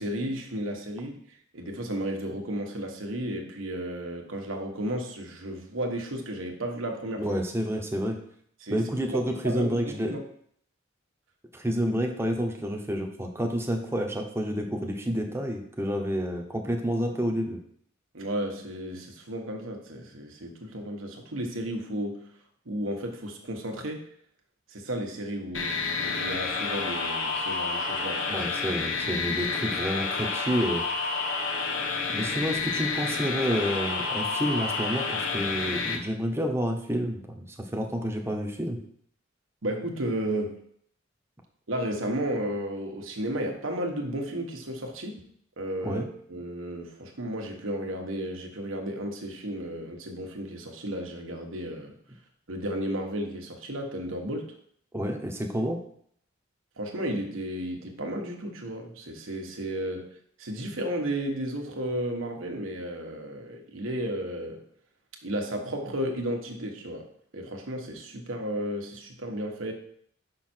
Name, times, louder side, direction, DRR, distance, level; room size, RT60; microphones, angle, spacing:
voice 1, 0.0-7.3 8.6-10.2 18.1-22.3 22.6-24.0 24.7-28.5 39.6-40.6 41.7-45.2 45.6-51.9 52.5-54.5 56.8-60.1 60.4-64.6 65.2-67.1 67.3-69.7, right 1 dB, 85° right, 2 dB, 1.4 m, -33 dB
voice 2, 7.2-8.2 8.7-10.2 11.5-17.6 28.3-30.8 32.1-38.8 45.8-46.1 54.9-55.8, equal, 15° right, 2 dB, 1.0 m, -29 dB
sound 1, 25.5-36.0, left 4 dB, 70° left, 1.2 m, -29 dB
5.9 x 5.8 x 4.5 m, 0.64 s
head